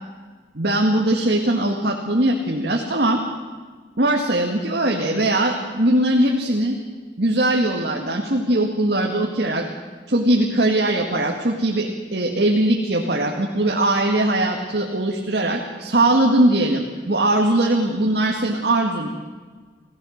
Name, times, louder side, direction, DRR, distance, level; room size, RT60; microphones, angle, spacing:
voice 1, 0.5-3.2 4.0-6.8 7.2-9.7 10.1-19.1, right 1 dB, 65° right, 0 dB, 2.0 m, -20 dB
28.5 x 16.5 x 6.6 m, 1.5 s
head